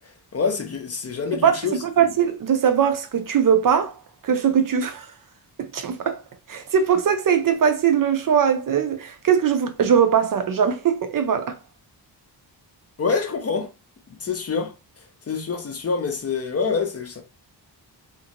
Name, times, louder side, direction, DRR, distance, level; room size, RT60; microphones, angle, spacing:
voice 1, 0.3-2.1 13.0-13.7 14.1-14.7 15.3-17.2, left 5 dB, 35° left, 0.5 m, -26 dB
voice 2, 2.0-3.9 4.2-5.1 5.6-6.2 6.5-11.6, right 7 dB, 50° right, 0.5 m, -20 dB
2.5 x 2.5 x 2.8 m
wide cardioid pair, 170°, 42 cm